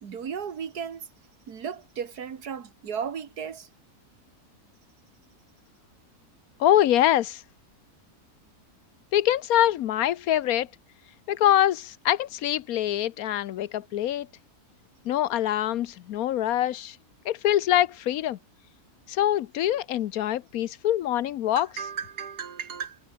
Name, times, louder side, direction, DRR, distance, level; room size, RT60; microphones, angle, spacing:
voice 1, 0.0-1.1 1.5-3.7 21.6-23.0, right 7 dB, 85° right, 2.1 m, -35 dB
voice 2, 6.6-7.4 9.1-10.7 11.3-14.3 15.1-17.0 17.2-18.4 19.1-21.7, left 12 dB, 75° left, 1.1 m, -24 dB
omnidirectional pair, 1.6 m